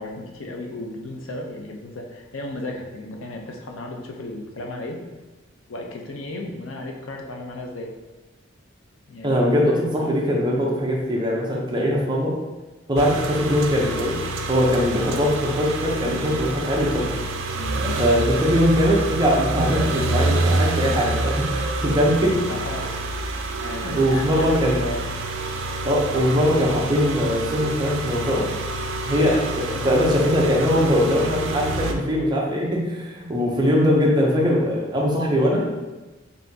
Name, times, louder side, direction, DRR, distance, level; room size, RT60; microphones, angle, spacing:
voice 1, 0.0-5.0 5.7-7.9 9.1-9.4 9.9-10.2 17.5-18.0 22.5-23.1 23.6-25.0, left 1 dB, 80° left, 1 dB, 0.6 m, -34 dB
voice 2, 9.2-12.3 12.9-14.2 14.5-17.2 18.0-22.4 23.8-24.8 25.8-28.5 29.1-35.9, equal, 20° right, -2 dB, 0.7 m, -21 dB
sound 1, 13.0-31.9, right 2 dB, 75° right, 0.4 m, -27 dB
5.4 x 2.7 x 2.7 m, 1.1 s
head